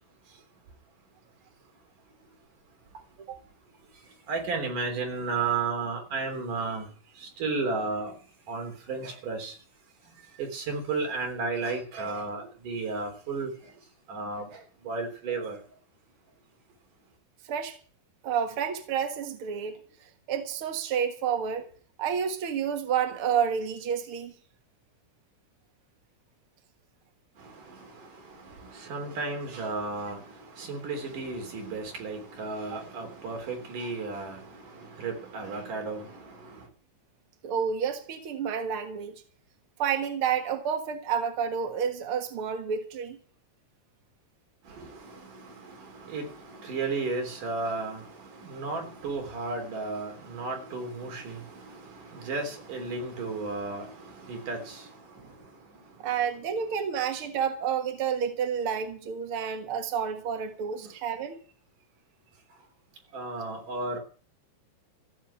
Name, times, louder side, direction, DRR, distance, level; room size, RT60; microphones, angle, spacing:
voice 1, 4.3-6.9 7.2-8.1 8.5-9.5 10.4-13.5 14.1-14.5 14.8-15.6 27.7-27.8 28.6-30.2 30.6-36.6 44.8-48.0 48.3-54.9 60.8-60.9 63.1-64.0, right 3 dB, 50° right, 4.9 m, -33 dB
voice 2, 18.2-19.8 20.3-21.7 22.0-24.3 32.7-32.8 37.4-39.2 39.8-43.2 56.0-61.4, right 7 dB, 75° right, 1.2 m, -30 dB
15.0 x 8.0 x 9.0 m
omnidirectional pair, 5.0 m